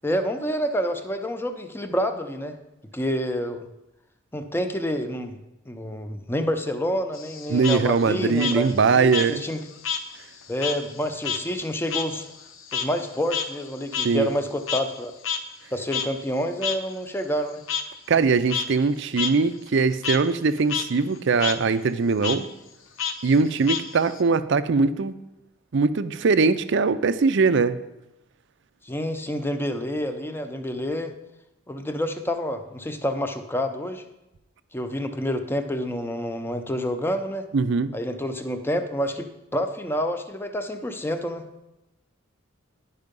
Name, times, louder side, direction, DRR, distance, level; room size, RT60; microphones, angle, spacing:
voice 1, 0.0-2.5 2.9-3.6 4.3-5.4 5.7-9.6 10.5-12.3 12.7-15.1 15.7-17.6 28.8-31.1 31.7-34.0 34.7-37.5 37.9-41.4, equal, 10° left, 8 dB, 0.7 m, -28 dB
Frog, 7.1-10.1 10.4-15.0 15.2-15.4 15.9-16.1 16.6-16.8 17.7-17.8 18.3-18.7 19.2-19.3 19.7-20.2 20.6-20.8 21.1-21.6 22.2-22.4 23.0-24.2, left 7 dB, 80° left, 0.8 m, -29 dB
voice 2, 7.5-9.4 14.0-14.3 18.1-22.5 23.2-25.1 25.7-27.8 37.5-37.9, right 4 dB, 65° right, 13 dB, 0.5 m, -21 dB
10.5 x 5.6 x 5.3 m, 0.95 s
head